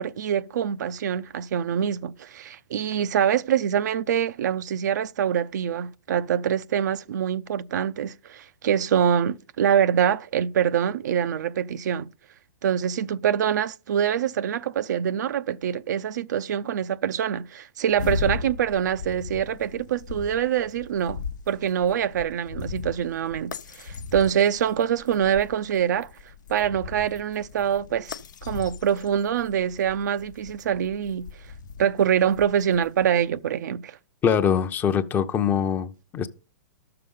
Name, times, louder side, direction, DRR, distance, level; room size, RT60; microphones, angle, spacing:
voice 1, 0.0-12.1 12.6-26.1 26.5-28.1 28.4-31.3 31.8-34.0, right 9 dB, 75° right, 0.5 m, -25 dB
sound 1, 17.9-33.1, left 5 dB, 85° left, 0.9 m, -37 dB
voice 2, 34.2-36.3, left 8 dB, 20° left, 0.7 m, -23 dB
12.5 x 6.8 x 5.5 m
hypercardioid pair, 150°, 10 cm